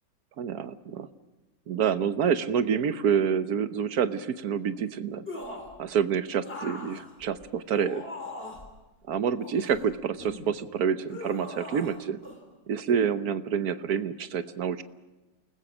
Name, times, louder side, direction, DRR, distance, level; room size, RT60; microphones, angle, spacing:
voice 1, 0.4-1.1 1.7-5.2 5.8-8.0 9.1-12.2 12.7-14.8, right 7 dB, 60° right, 11 dB, 1.3 m, -27 dB
sound 1, 5.3-5.8 6.4-8.7 9.4-10.5 11.1-12.0 12.2-12.4, left 2 dB, 30° left, 3.7 m, -40 dB
29.0 x 20.0 x 6.2 m, 1.1 s
omnidirectional pair, 2.0 m